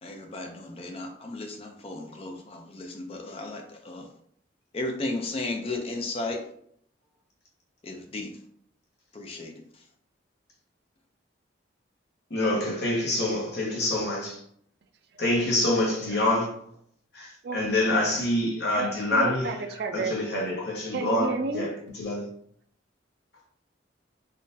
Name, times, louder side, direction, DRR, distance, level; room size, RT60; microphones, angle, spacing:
voice 1, 0.0-4.1 4.7-6.5 7.8-8.4 9.1-9.9, left 2 dB, 30° left, 0.4 m, -35 dB
voice 2, 12.3-14.4 15.2-16.5 17.1-19.5 19.9-22.3, left 1 dB, 60° left, 1.0 m, -26 dB
voice 3, 18.8-20.1 20.9-21.7, right 4 dB, 55° right, 0.4 m, -31 dB
3.7 x 2.5 x 2.6 m
head